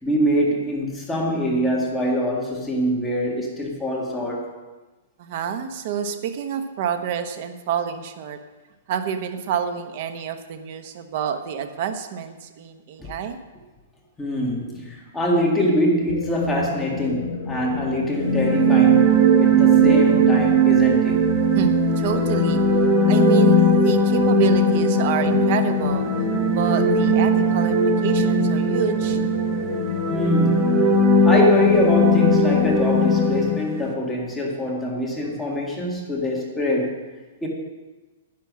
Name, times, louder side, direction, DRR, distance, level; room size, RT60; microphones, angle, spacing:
voice 1, 0.0-4.5 13.0-13.1 14.2-21.2 30.1-36.9 37.4-37.5, equal, 5° left, -3 dB, 1.8 m, -24 dB
voice 2, 5.2-8.4 8.9-13.4 21.5-22.6 23.1-26.1 26.5-29.2, right 8 dB, 40° right, 8 dB, 1.1 m, -28 dB
sound 1, 16.1-33.6, left 9 dB, 55° left, 0.8 m, -28 dB
sound 2, 18.2-33.9, right 2 dB, 20° right, 1.3 m, -19 dB
10.5 x 10.0 x 6.2 m, 1.2 s
hypercardioid pair, 170°, 0 cm